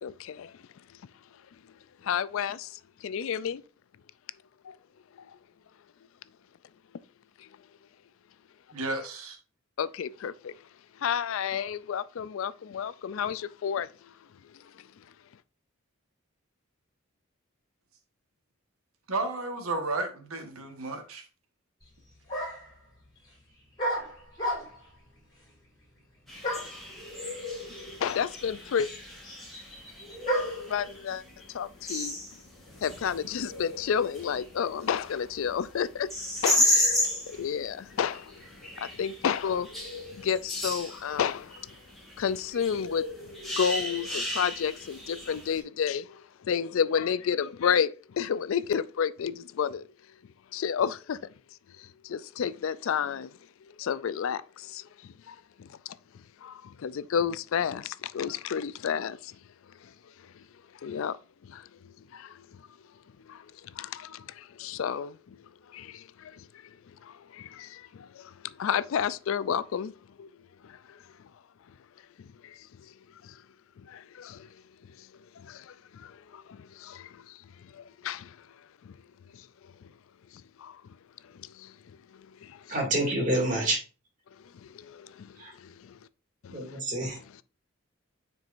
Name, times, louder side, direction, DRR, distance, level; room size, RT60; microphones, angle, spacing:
voice 1, 0.0-0.5 2.0-2.7 3.0-3.6 4.6-4.7 7.4-7.5 9.8-10.5 11.0-13.9 28.0-28.9 30.7-31.2 31.5-32.2 32.8-36.1 36.4-38.4 38.8-39.7 40.2-41.7 42.2-43.1 43.6-49.9 50.5-51.2 51.8-53.3 53.8-55.7 56.4-59.3 60.8-61.2 61.4-61.7 62.1-62.6 63.3-65.4 65.7-66.5 67.0-70.3 70.6-70.8 72.2-72.6 73.2-73.3 73.8-74.5 75.4-77.4 77.7-78.4 78.9-79.0 79.3-79.4 80.6-80.8 81.4-81.7 82.1-83.1 84.6-85.9 86.4-87.4, left 7 dB, 70° left, 0.3 m, -31 dB
voice 2, 8.7-9.4 19.1-21.2, right 2 dB, 85° right, 1.3 m, -32 dB
sound 1, 21.8-21.9 22.3-22.8 23.8-24.9 26.4-26.8 27.8-27.9 28.1-30.7, right 1 dB, 20° left, 3.9 m, -33 dB
sound 2, 26.3-45.6, left 1 dB, ahead, 2.1 m, -34 dB
voice 3, 82.7-83.8 85.4-85.5 86.5-87.2, right 1 dB, 35° right, 2.3 m, -27 dB
9.5 x 4.6 x 2.5 m
head